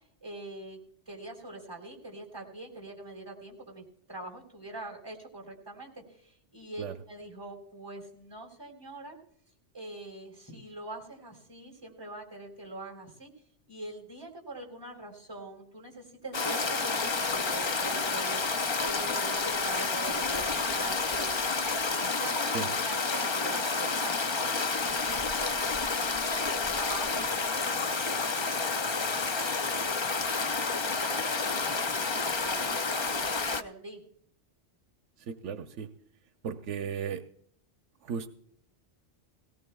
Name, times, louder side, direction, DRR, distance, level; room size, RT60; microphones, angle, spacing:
voice 1, 0.2-0.8 1.1-9.2 9.7-13.3 13.7-21.4 21.9-29.5 29.8-34.0, right 2 dB, 20° right, 1 dB, 3.7 m, -44 dB
Stream, 16.3-33.6, left 4 dB, 45° left, 0.3 m, -30 dB
voice 2, 35.2-35.9 36.4-37.2 38.0-38.3, right 7 dB, 85° right, 8 dB, 1.0 m, -35 dB
18.0 x 18.0 x 2.3 m, 0.66 s
omnidirectional pair, 1.2 m